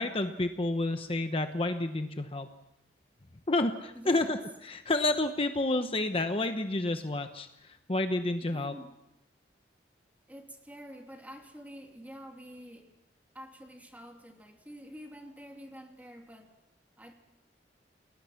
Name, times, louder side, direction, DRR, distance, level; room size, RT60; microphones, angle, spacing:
voice 1, 0.0-2.5 3.5-4.4 4.6-8.7, left 2 dB, 30° left, 7 dB, 1.0 m, -30 dB
voice 2, 3.9-4.4 8.4-8.9 10.3-12.9 13.3-16.5 17.0-17.1, equal, 10° right, 3 dB, 2.7 m, -48 dB
29.0 x 20.0 x 5.9 m, 0.89 s
head